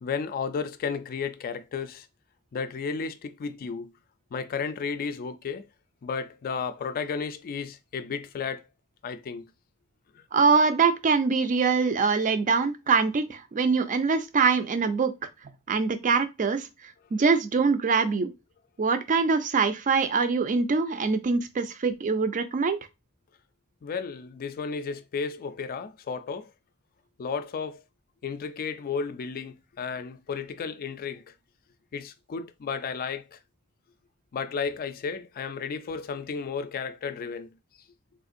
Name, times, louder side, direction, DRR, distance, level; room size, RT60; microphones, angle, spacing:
voice 1, 0.0-2.1 2.5-3.9 4.3-5.7 6.0-8.6 9.0-9.5 10.2-10.3 23.8-26.5 27.2-27.8 28.2-31.3 31.9-33.4 34.3-37.6, left 5 dB, 45° left, 0.3 m, -33 dB
voice 2, 10.3-15.1 15.7-16.7 17.1-18.3 18.8-22.8, right 5 dB, 35° right, 0.4 m, -23 dB
3.6 x 2.4 x 2.5 m
head